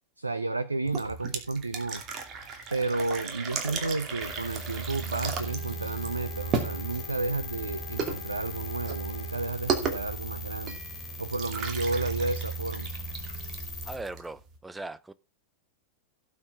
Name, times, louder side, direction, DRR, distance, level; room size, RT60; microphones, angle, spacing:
voice 1, 0.2-2.0 2.7-10.8 11.2-12.9, right 3 dB, 80° right, 0.6 m, -32 dB
sound 1, 0.8-14.6, right 5 dB, 30° right, 2.5 m, -36 dB
sound 2, 4.2-14.0, right 2 dB, 15° left, 2.9 m, -38 dB
sound 3, 5.4-9.6, left 9 dB, 60° left, 0.8 m, -47 dB
voice 2, 13.8-15.1, right 2 dB, 10° right, 0.7 m, -39 dB
17.5 x 6.6 x 3.5 m
figure-of-eight pair, 90°, 0 cm